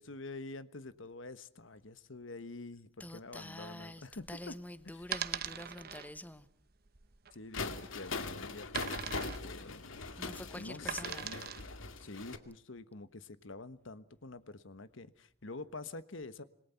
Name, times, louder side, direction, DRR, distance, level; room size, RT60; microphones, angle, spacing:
voice 1, 0.0-4.6 4.8-5.1 7.3-9.9 10.5-11.5 12.0-16.4, left 3 dB, 70° left, 1.3 m, -47 dB
voice 2, 3.0-6.5 10.2-11.3, left 1 dB, 10° left, 1.1 m, -46 dB
sound 1, 4.1-11.8, right 9 dB, 50° right, 1.0 m, -42 dB
sound 2, 7.5-12.4, left 3 dB, 90° left, 2.2 m, -41 dB
27.0 x 22.0 x 5.8 m
head